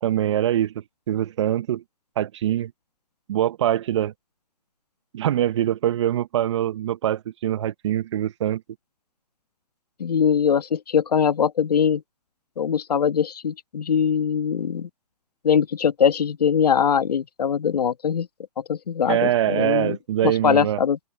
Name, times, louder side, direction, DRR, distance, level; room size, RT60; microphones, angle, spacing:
voice 1, 0.0-0.7 1.1-1.8 2.2-2.7 3.3-4.1 5.1-8.6 19.1-20.8, right 11 dB, 45° right, 1.1 m, -23 dB
voice 2, 10.0-12.0 12.6-14.9 15.4-18.3 18.6-20.0 20.2-21.0, left 7 dB, 75° left, 1.5 m, -22 dB
open air
hypercardioid pair, 155°, 21 cm